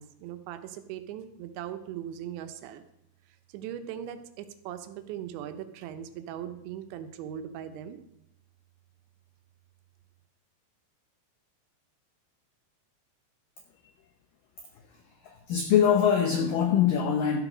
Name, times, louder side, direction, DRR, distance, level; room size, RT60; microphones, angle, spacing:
voice 1, 0.0-2.8 3.5-8.0, right 10 dB, 80° right, 9 dB, 3.1 m, -39 dB
voice 2, 15.2-17.4, left 8 dB, 80° left, 5 dB, 1.9 m, -23 dB
13.0 x 8.0 x 6.1 m, 0.80 s
omnidirectional pair, 5.3 m